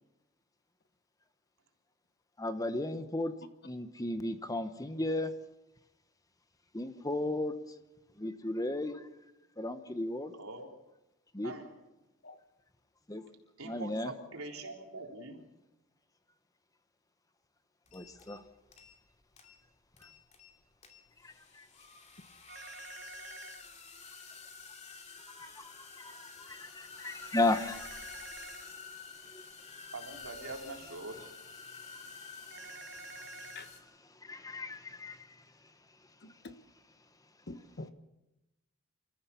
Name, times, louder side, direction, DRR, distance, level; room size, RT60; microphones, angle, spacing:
voice 1, 2.4-3.3 3.6-5.3 6.7-7.5 8.2-9.1 9.6-10.3 11.3-11.5 13.1-13.2 13.6-14.1 17.9-18.4 21.2-21.7 25.4-25.7 26.0-28.0 29.3-29.4 34.2-35.4, left 2 dB, 15° left, 10 dB, 1.0 m, -35 dB
voice 2, 10.3-10.7 11.4-11.7 13.3-15.5 29.9-31.3, right 2 dB, 90° right, 2 dB, 3.7 m, -44 dB
sound 1, 17.9-18.4 18.7-19.1 19.4-19.6 20.0-20.5 20.8-33.8, left 4 dB, 35° left, 2.9 m, -50 dB
sound 2, 22.5-23.6 27.5-28.6 32.5-33.7, right 3 dB, 60° right, 2.1 m, -48 dB
voice 3, 36.2-36.5 37.5-37.9, left 2 dB, 50° left, 11 dB, 1.3 m, -45 dB
27.0 x 14.5 x 7.0 m, 0.96 s
head